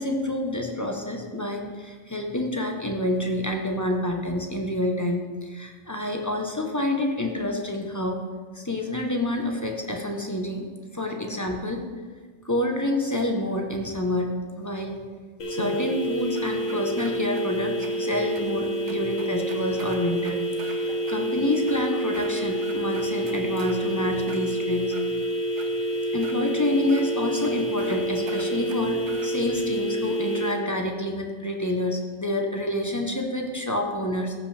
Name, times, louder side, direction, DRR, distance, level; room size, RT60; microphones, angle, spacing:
voice 1, 0.0-8.2 8.5-10.7 10.9-11.8 12.4-15.0 15.5-24.9 26.1-34.3, left 1 dB, 15° left, 2 dB, 0.7 m, -28 dB
sound 1, 15.4-30.5, right 1 dB, 75° left, 1.6 m, -28 dB
sound 2, 16.3-17.4 17.8-17.9 18.3-18.4 18.9-20.8 21.1-21.2 21.6-22.3 22.6-23.8 24.2-25.0 25.6-25.7 26.2-26.4 26.9-27.0 27.4-27.5 27.8-28.0 28.3-29.3, right 5 dB, 65° right, 1.1 m, -43 dB
14.0 x 5.7 x 3.3 m, 1.5 s
omnidirectional pair, 1.4 m